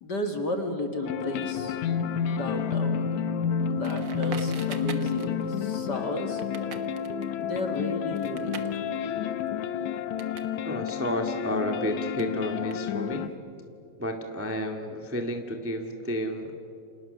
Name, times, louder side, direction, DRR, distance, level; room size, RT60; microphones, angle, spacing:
voice 1, 0.0-1.8 2.3-3.1 3.7-6.4 7.4-8.6, left 2 dB, 40° left, 5 dB, 1.7 m, -33 dB
sound 1, 1.0-13.3, left 7 dB, 65° left, 2.0 m, -30 dB
Crackle, 3.8-10.5 10.8-13.3, right 6 dB, 65° right, 1.1 m, -44 dB
voice 2, 10.6-13.2 14.0-16.6, equal, 15° right, 4 dB, 0.4 m, -31 dB
30.0 x 27.0 x 6.7 m, 2.6 s
omnidirectional pair, 4.2 m